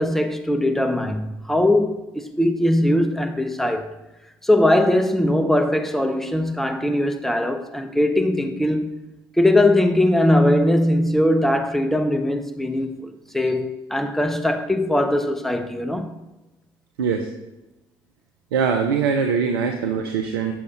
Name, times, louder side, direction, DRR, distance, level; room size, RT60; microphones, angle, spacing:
voice 1, 0.0-3.9 4.4-8.9 9.4-13.1 13.3-16.2, left 1 dB, ahead, 0.7 m, -20 dB
voice 2, 17.0-17.3 18.5-20.5, right 6 dB, 80° right, 0.4 m, -22 dB
7.2 x 6.3 x 2.8 m
hypercardioid pair, 50°, 12 cm